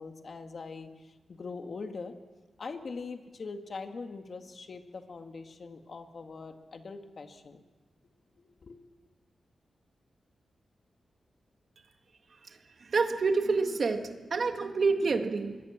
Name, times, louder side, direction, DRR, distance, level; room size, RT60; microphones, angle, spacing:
voice 1, 0.0-2.1 2.6-7.6 8.3-8.8, left 4 dB, 50° left, 6 dB, 2.0 m, -42 dB
voice 2, 12.9-15.6, right 4 dB, 55° right, 5 dB, 1.9 m, -28 dB
25.0 x 22.5 x 7.3 m, 1.3 s
wide cardioid pair, 110°, 0 cm